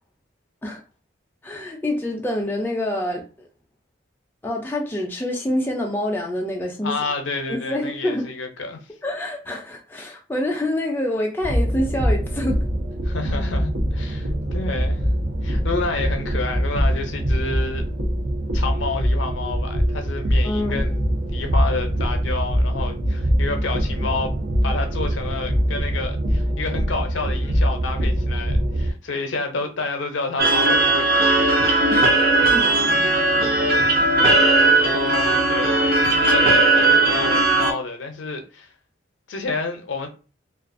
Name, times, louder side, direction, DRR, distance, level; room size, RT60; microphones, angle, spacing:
voice 1, 1.4-3.5 4.4-6.9 7.5-8.3 9.0-12.7 20.4-20.8 31.9-32.6, left 1 dB, 10° left, 0.3 m, -26 dB
voice 2, 6.8-8.8 13.0-15.0 15.4-17.9 18.5-24.3 24.6-31.4 33.0-33.1 33.8-34.4 34.8-38.7 39.3-40.1, left 3 dB, 70° left, 0.5 m, -29 dB
sound 1, 11.4-28.9, equal, 80° right, 0.8 m, -23 dB
sound 2, 30.4-37.7, right 2 dB, 50° right, 0.5 m, -17 dB
2.3 x 2.2 x 2.5 m
head